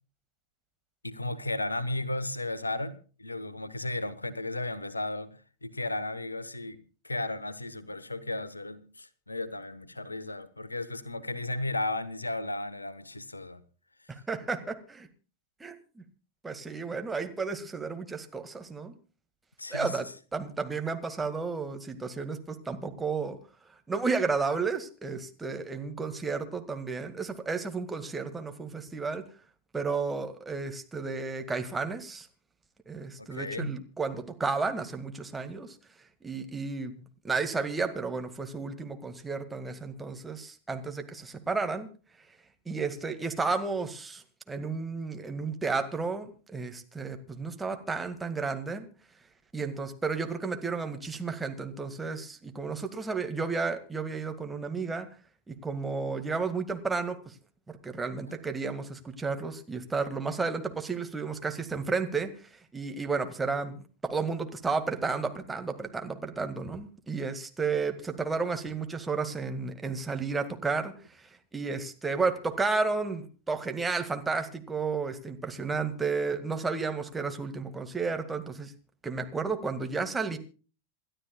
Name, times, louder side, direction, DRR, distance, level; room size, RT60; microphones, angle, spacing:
voice 1, 1.0-13.6 19.6-20.0 33.2-33.8, left 2 dB, 80° left, 1.1 m, -34 dB
voice 2, 14.1-15.1 15.6-16.0 16.4-18.9 19.7-23.4 23.9-29.2 29.7-32.3 32.9-35.8 36.2-41.9 42.7-48.9 49.5-55.1 55.5-57.3 57.7-62.3 62.7-70.9 71.2-78.7 79.0-80.4, right 4 dB, 10° right, 1.9 m, -32 dB
28.0 x 12.5 x 2.3 m
figure-of-eight pair, 90°, 0 cm